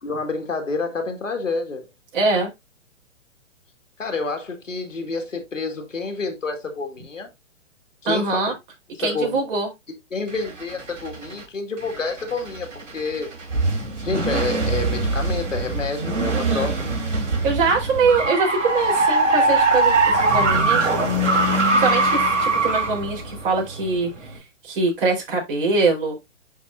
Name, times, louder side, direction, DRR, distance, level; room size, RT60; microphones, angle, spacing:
voice 1, 0.0-1.9 4.0-7.3 8.0-8.5 9.0-9.4 10.1-13.3 14.0-16.7, left 4 dB, 85° left, 2.1 m, -28 dB
voice 2, 2.1-2.5 8.1-8.5 9.0-9.7 16.2-16.7 17.4-20.9 21.7-24.1 24.6-26.1, right 4 dB, 45° right, 4.2 m, -23 dB
sound 1, 10.3-11.4 11.8-24.4, right 2 dB, 70° right, 3.3 m, -22 dB
10.5 x 4.1 x 2.6 m
figure-of-eight pair, 125°, 37 cm